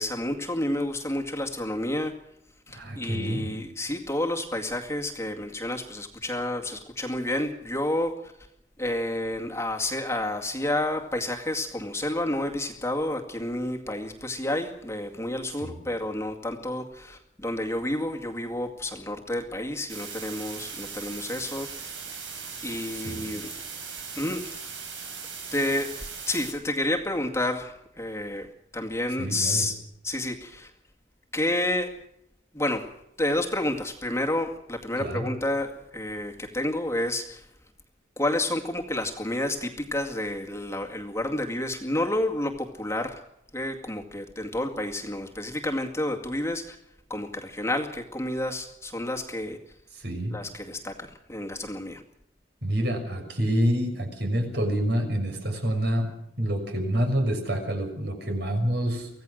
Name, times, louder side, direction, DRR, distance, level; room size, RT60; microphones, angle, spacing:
voice 1, 0.0-2.1 2.7-8.3 8.8-21.9 22.6-23.5 24.2-24.5 25.5-26.0 26.3-29.7 30.0-30.7 31.3-32.0 32.5-32.9 33.2-37.5 38.2-43.2 43.5-46.8 47.1-49.6 50.3-52.0, left 1 dB, 15° left, 2 dB, 2.1 m, -30 dB
voice 2, 2.7-3.5 15.6-15.8 22.9-23.3 29.2-29.7 35.0-35.3 49.9-50.4 52.6-56.1 56.4-59.1, equal, 60° right, 4 dB, 6.3 m, -27 dB
sound 1, 19.9-26.5, right 5 dB, 80° right, 7.1 m, -39 dB
25.0 x 17.0 x 6.5 m, 0.78 s
head